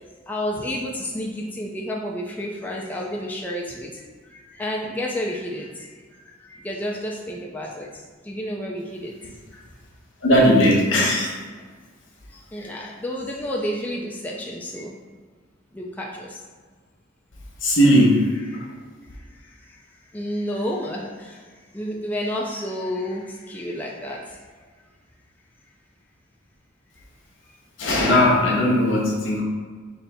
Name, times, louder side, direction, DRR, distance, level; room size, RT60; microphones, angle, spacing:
voice 1, 0.3-4.0 4.3-9.6 11.1-11.3 12.3-15.0 15.7-16.4 17.7-18.7 19.3-24.5, equal, 10° left, -2 dB, 0.3 m, -31 dB
voice 2, 10.2-11.3 17.6-18.2 18.5-18.6 27.8-29.4, equal, 75° left, -2 dB, 0.9 m, -17 dB
4.0 x 2.7 x 3.3 m, 1.5 s
head